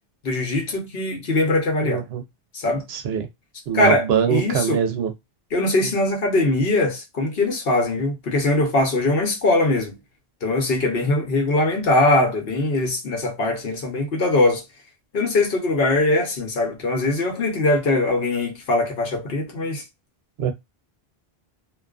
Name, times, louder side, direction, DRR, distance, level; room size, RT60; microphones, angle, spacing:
voice 1, 0.2-2.0 2.5-2.8 3.7-4.8 5.5-10.0 10.4-14.6 15.1-19.8, left 2 dB, 70° left, 1.0 m, -21 dB
voice 2, 1.8-2.2 2.9-3.3 3.7-5.1 20.4-20.5, right 8 dB, 85° right, 0.8 m, -23 dB
2.5 x 2.3 x 2.3 m
omnidirectional pair, 1.0 m